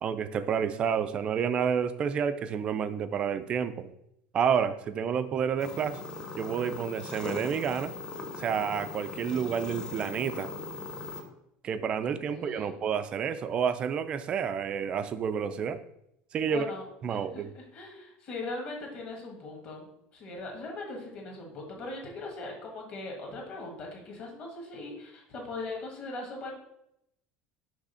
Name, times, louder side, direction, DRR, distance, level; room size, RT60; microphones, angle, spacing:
voice 1, 0.0-3.9 4.3-6.0 6.4-7.9 8.4-10.5 11.6-15.8 16.3-16.7 17.0-17.5, right 7 dB, 25° right, 12 dB, 0.3 m, -29 dB
sound 1, 5.6-11.2, left 3 dB, 20° left, 0.8 m, -39 dB
voice 2, 12.3-12.8 16.5-19.9 20.1-26.5, left 2 dB, 35° left, -1 dB, 1.5 m, -40 dB
6.1 x 3.3 x 5.6 m, 0.77 s
cardioid pair, 180°, 4 cm